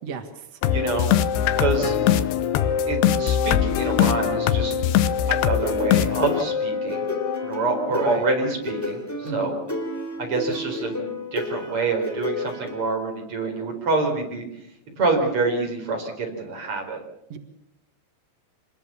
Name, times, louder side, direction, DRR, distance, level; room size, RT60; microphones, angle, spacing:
voice 1, 0.0-0.6 7.9-8.2 9.2-9.6 17.3-17.4, right 6 dB, 65° right, 7 dB, 1.5 m, -35 dB
sound 1, 0.6-8.6, left 9 dB, 75° left, 2.8 m, -22 dB
voice 2, 0.7-1.1 1.6-1.9 2.9-4.7 5.3-7.1 7.4-9.6 10.2-14.5 15.0-17.0, right 3 dB, 30° right, 2 dB, 5.1 m, -26 dB
sound 2, 5.5-12.8, left 3 dB, 5° left, 3.5 m, -32 dB
26.5 x 21.5 x 7.0 m, 0.78 s
omnidirectional pair, 5.2 m